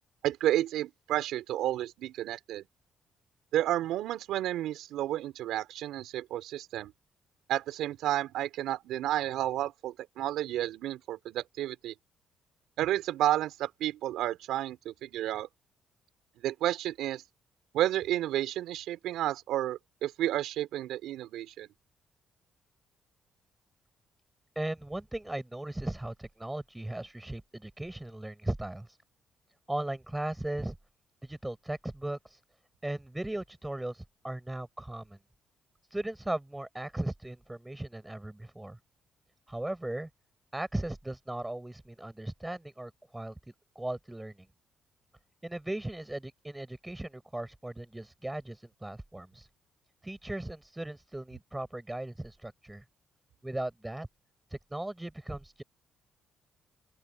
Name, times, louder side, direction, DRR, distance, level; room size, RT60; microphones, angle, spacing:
voice 1, 0.2-2.7 3.5-6.9 7.5-11.9 12.8-15.5 16.4-17.2 17.7-21.7, right 13 dB, 85° right, 4.9 m, -31 dB
voice 2, 24.6-28.9 29.7-30.8 31.2-32.4 32.8-35.2 35.9-38.8 39.5-40.1 40.5-43.4 43.8-44.5 45.4-49.5 50.0-52.8 53.4-54.1 54.5-55.6, right 1 dB, 10° right, 5.3 m, -37 dB
open air
cardioid pair, 90°, 0 cm